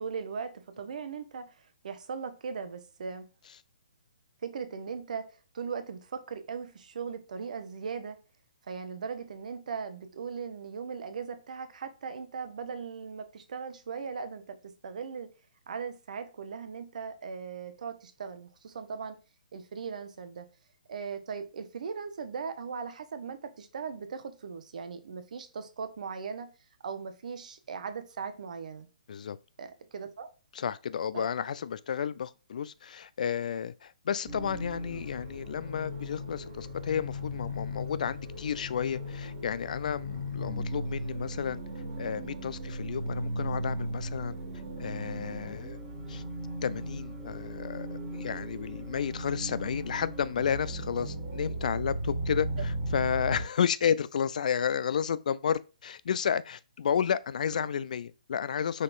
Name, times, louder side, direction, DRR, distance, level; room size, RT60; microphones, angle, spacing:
voice 1, 0.0-3.3 4.4-5.3 5.5-8.2 8.7-15.3 15.7-19.2 19.5-20.5 20.9-26.5 26.8-28.9 29.6-30.3 31.1-31.3, right 6 dB, 60° right, 0.8 m, -38 dB
voice 2, 30.5-41.6 42.0-44.4 44.8-45.8 46.1-46.2 46.6-58.8, left 8 dB, 60° left, 0.4 m, -32 dB
sound 1, 34.2-53.5, equal, 30° right, 1.6 m, -37 dB
5.2 x 4.0 x 2.5 m
hypercardioid pair, 135°, 5 cm